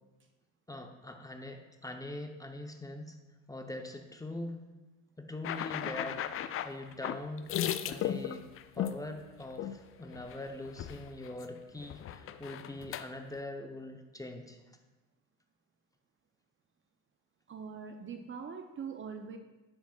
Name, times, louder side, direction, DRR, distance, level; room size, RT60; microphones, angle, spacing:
voice 1, 0.7-3.2 3.5-4.6 5.2-8.5 8.7-14.8, left 1 dB, 10° left, 4 dB, 0.8 m, -43 dB
sound 1, 5.4-9.0 9.6-9.8 10.1-10.4 10.6-11.4 11.8-13.1, left 10 dB, 35° left, 0.4 m, -36 dB
voice 2, 17.5-19.4, right 6 dB, 30° right, 6 dB, 0.7 m, -42 dB
10.0 x 7.7 x 2.4 m, 1.1 s
hypercardioid pair, 65°, 39 cm